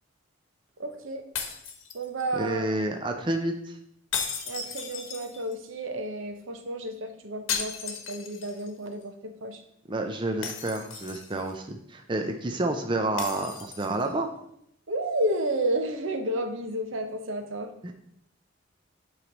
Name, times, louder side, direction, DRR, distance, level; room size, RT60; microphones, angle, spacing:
voice 1, 0.8-1.2 1.9-2.7 4.5-9.6 12.3-12.4 14.9-17.7, right 1 dB, 75° right, 7 dB, 0.8 m, -31 dB
sound 1, 1.3-2.4 4.1-5.7 7.5-8.7 9.0-9.1 10.4-11.5 13.2-14.1, left 6 dB, 75° left, 1.0 m, -35 dB
voice 2, 2.4-3.8 9.9-14.3 17.8-17.9, right 2 dB, 25° right, 4 dB, 0.5 m, -29 dB
8.7 x 3.2 x 5.2 m, 0.74 s
head